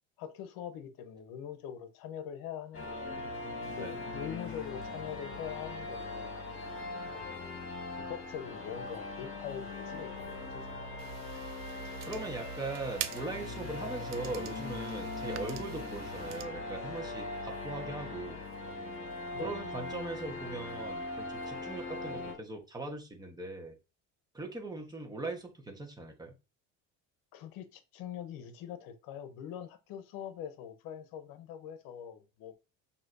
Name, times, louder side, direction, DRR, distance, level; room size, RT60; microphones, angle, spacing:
voice 1, 0.2-3.2 3.7-6.3 7.0-7.7 8.1-11.0 19.3-19.6 27.3-32.5, left 9 dB, 75° left, 0.8 m, -43 dB
sound 1, 2.7-22.3, left 2 dB, 40° left, 1.8 m, -40 dB
sound 2, 11.0-16.4, right 13 dB, 50° right, 0.5 m, -45 dB
voice 2, 12.0-18.4 19.4-23.7 24.3-26.3, right 2 dB, 10° right, 1.1 m, -40 dB
6.1 x 2.8 x 2.6 m
cardioid pair, 100°, 35 cm